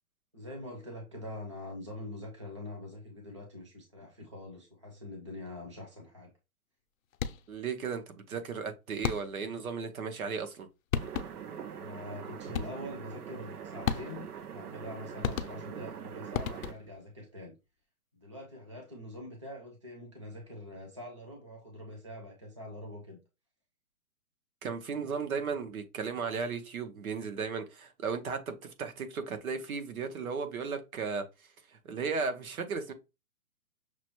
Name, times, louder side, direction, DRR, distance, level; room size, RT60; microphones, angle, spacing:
voice 1, 0.3-6.3 11.7-17.6 18.1-23.2, left 1 dB, 20° right, 0.4 m, -44 dB
sound 1, 7.1-7.6 9.0-9.6 10.6-10.7 10.9-11.6 12.5-13.0 13.9-14.4 15.2-15.9 16.3-17.0, left 8 dB, 65° left, 0.6 m, -35 dB
voice 2, 7.5-10.7 24.6-31.2 31.7-32.9, right 5 dB, 70° right, 1.1 m, -35 dB
sound 2, 10.9-16.7, right 8 dB, 90° right, 0.8 m, -43 dB
6.0 x 2.1 x 3.0 m
hypercardioid pair, 175°, 44 cm